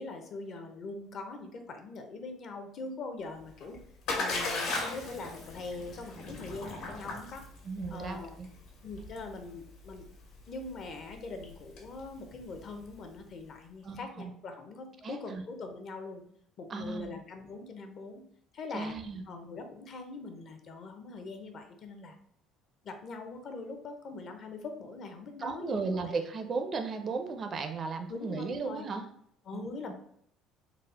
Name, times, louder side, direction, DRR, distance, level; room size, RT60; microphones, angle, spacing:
voice 1, 0.0-3.8 4.1-7.5 7.9-8.4 8.8-10.1 10.5-16.2 16.6-18.2 18.5-18.9 19.3-22.2 22.8-26.1 28.1-28.9 29.5-29.9, left 3 dB, 45° left, 6 dB, 0.6 m, -42 dB
Splash splatter, 3.4-13.2, left 3 dB, 70° left, 1.4 m, -38 dB
voice 2, 7.6-8.5 13.8-14.3 15.0-15.4 16.7-17.1 18.7-19.2 25.4-29.0 29.5-29.8, right 4 dB, 35° right, 6 dB, 0.4 m, -35 dB
4.0 x 2.0 x 4.0 m, 0.69 s
cardioid pair, 145°, 0 cm